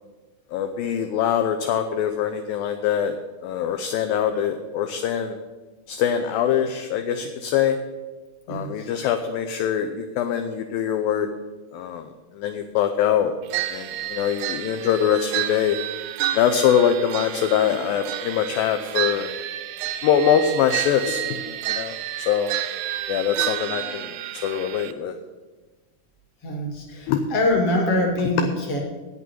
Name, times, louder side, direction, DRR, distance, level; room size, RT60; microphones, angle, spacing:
voice 1, 0.5-3.2 3.4-5.4 5.9-7.8 8.5-11.3 11.7-12.1 12.4-13.3 13.7-15.8 16.3-19.3 20.0-22.0 22.3-22.5 23.1-25.1 27.1-27.2, left 8 dB, 80° left, 7 dB, 2.2 m, -23 dB
voice 2, 8.5-8.9 26.4-28.8, left 1 dB, 40° left, 0 dB, 2.9 m, -24 dB
sound 1, 13.5-24.9, right 13 dB, 80° right, 2.1 m, -30 dB
8.7 x 8.3 x 9.1 m, 1.3 s
omnidirectional pair, 4.6 m